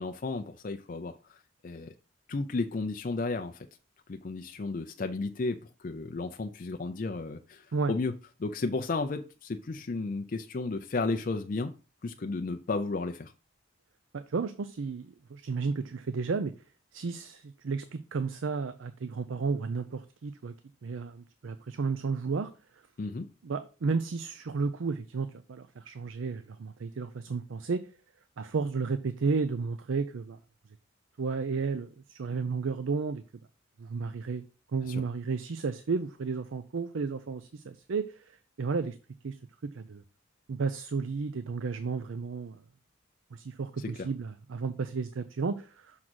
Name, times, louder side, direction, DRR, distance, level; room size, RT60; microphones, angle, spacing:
voice 1, 0.0-1.9 2.3-3.7 4.1-8.1 8.4-11.7 12.0-13.3 23.0-23.3 34.8-35.0 43.8-44.1, left 3 dB, 45° left, 0.4 m, -33 dB
voice 2, 14.1-16.5 16.9-20.5 20.8-22.5 23.4-27.8 28.4-30.4 31.2-33.2 33.8-34.4 34.7-38.2 38.6-39.0 39.2-39.4 39.6-40.0 40.5-42.6 43.3-46.0, right 4 dB, 80° right, 0.5 m, -32 dB
6.1 x 3.8 x 6.1 m
head